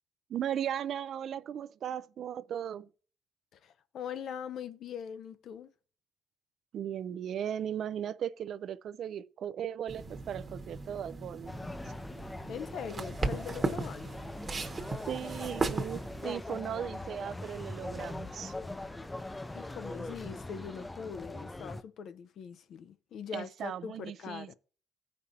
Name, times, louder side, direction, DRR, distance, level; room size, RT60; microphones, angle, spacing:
voice 1, 0.3-2.9 6.7-11.5 15.1-18.5 23.3-24.5, right 9 dB, 65° right, 0.3 m, -37 dB
voice 2, 3.5-5.7 12.5-14.3 19.5-24.5, left 7 dB, 70° left, 0.5 m, -42 dB
sound 1, 9.9-16.3, right 3 dB, 30° right, 1.0 m, -37 dB
sound 2, 11.5-21.8, left 2 dB, 15° left, 0.4 m, -41 dB
15.0 x 5.3 x 2.8 m
cardioid pair, 90°, 0 cm